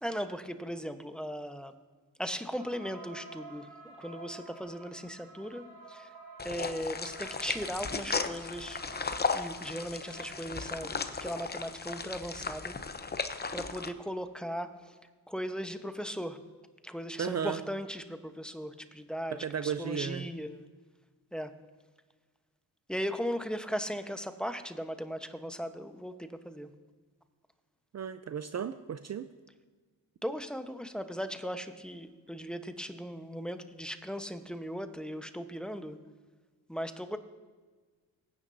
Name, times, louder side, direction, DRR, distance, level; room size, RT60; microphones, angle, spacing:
voice 1, 0.0-1.7 2.2-6.1 6.4-8.8 9.3-10.9 11.2-12.7 13.5-15.0 15.3-16.4 16.8-20.6 21.3-21.5 22.9-26.7 30.2-36.0 36.7-37.2, equal, ahead, 8 dB, 1.0 m, -38 dB
sound 1, 2.6-10.3, right 3 dB, 65° right, 3.7 m, -51 dB
sound 2, 6.4-13.9, left 4 dB, 25° left, 0.9 m, -36 dB
voice 2, 17.2-17.6 19.4-20.3 27.9-29.3, right 7 dB, 40° right, 10 dB, 0.6 m, -34 dB
19.5 x 9.6 x 2.7 m, 1.4 s
cardioid pair, 60°, 40 cm